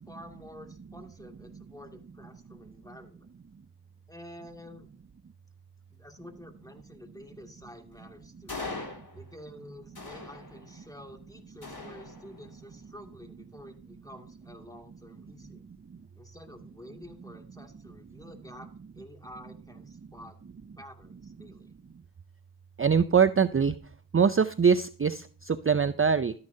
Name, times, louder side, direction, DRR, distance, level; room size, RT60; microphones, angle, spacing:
voice 1, 0.0-3.3 4.1-4.9 5.9-8.6 9.1-15.6 16.1-20.4 20.8-21.7, equal, 10° left, 3 dB, 2.3 m, -49 dB
sound 1, 8.5-9.5 9.9-10.9 11.6-12.6, left 3 dB, 65° left, 3.7 m, -41 dB
voice 2, 22.8-23.8 24.1-26.3, right 6 dB, 35° right, 13 dB, 0.5 m, -23 dB
13.0 x 9.6 x 2.8 m, 0.41 s
wide cardioid pair, 40°, 40 cm